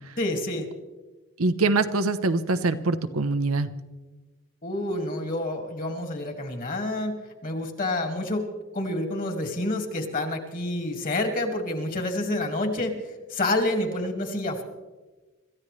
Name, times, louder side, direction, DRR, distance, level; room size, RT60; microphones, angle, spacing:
voice 1, 0.2-0.7 4.6-7.2 7.4-8.4 8.7-14.6, left 1 dB, 40° left, 4 dB, 2.1 m, -28 dB
voice 2, 1.4-3.7, right 3 dB, 90° right, 9 dB, 0.9 m, -24 dB
26.5 x 14.0 x 3.2 m, 1.2 s
head